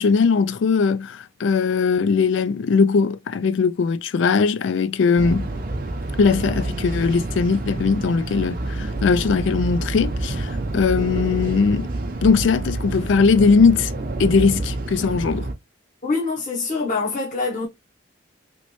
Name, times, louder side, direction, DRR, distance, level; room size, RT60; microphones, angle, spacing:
voice 1, 0.0-5.5 6.2-11.9 12.2-13.9 14.2-15.5, left 5 dB, 65° left, 0.3 m, -19 dB
sound 1, 5.2-15.5, right 2 dB, 45° right, 0.6 m, -28 dB
voice 2, 16.0-17.7, left 3 dB, 40° left, 0.8 m, -24 dB
3.1 x 2.9 x 2.9 m
head